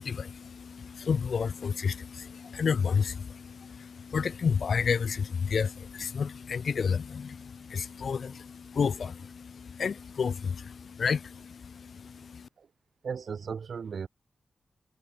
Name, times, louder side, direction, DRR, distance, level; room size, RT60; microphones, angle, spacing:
voice 1, 0.0-12.5, left 6 dB, 60° left, 0.3 m, -31 dB
voice 2, 13.0-14.1, right 6 dB, 60° right, 5.6 m, -36 dB
wide cardioid pair, 125°, 0 cm